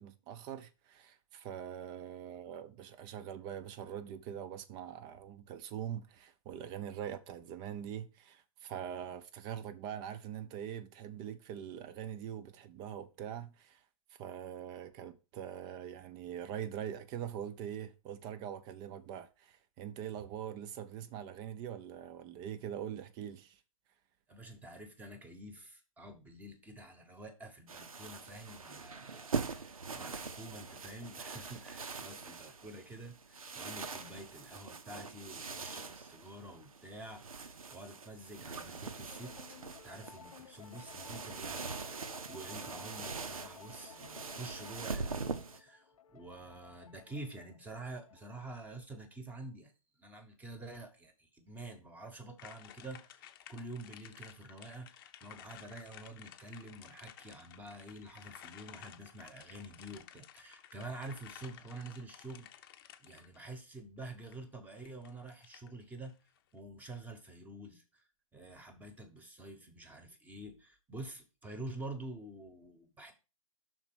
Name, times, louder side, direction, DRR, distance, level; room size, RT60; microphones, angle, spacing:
voice 1, 0.0-13.8 14.2-23.6, right 9 dB, 25° right, 0.6 m, -43 dB
voice 2, 24.3-39.6 39.8-45.2 45.5-49.7 50.0-53.2 53.5-62.7 63.0-66.1 66.5-68.0 68.3-73.1, right 2 dB, 10° right, 1.0 m, -48 dB
sound 1, 27.7-45.6, right 4 dB, 90° right, 0.9 m, -43 dB
sound 2, 39.1-48.5, left 7 dB, 85° left, 0.7 m, -57 dB
sound 3, 52.4-63.5 64.3-64.4 64.8-66.1 66.4-66.5, left 11 dB, 40° left, 0.7 m, -55 dB
6.0 x 4.2 x 6.0 m
hypercardioid pair, 135°, 18 cm